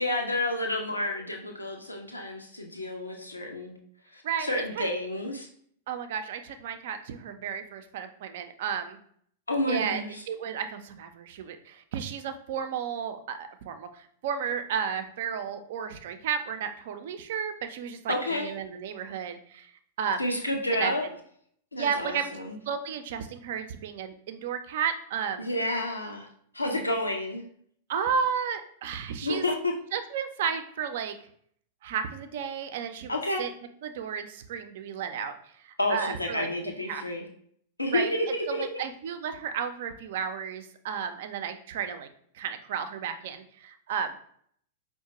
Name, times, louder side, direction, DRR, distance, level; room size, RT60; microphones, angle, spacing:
voice 1, 0.0-3.7 4.1-5.5 9.5-10.2 18.1-18.5 20.2-21.0 21.7-22.6 25.4-26.3 26.5-27.4 29.2-29.7 33.1-33.5 35.8-37.3 37.8-38.6, left 1 dB, 80° left, 1 dB, 0.5 m, -30 dB
voice 2, 4.2-4.9 5.9-9.0 9.7-19.7 20.0-20.2 20.7-20.9 21.7-22.3 22.7-25.5 27.9-29.4 29.9-31.2 31.8-33.5 33.8-36.5 36.9-37.0 37.9-38.2 38.5-42.1 42.3-44.2, right 7 dB, 55° right, 8 dB, 0.4 m, -33 dB
4.8 x 2.1 x 2.9 m, 0.63 s
figure-of-eight pair, 95°, 0 cm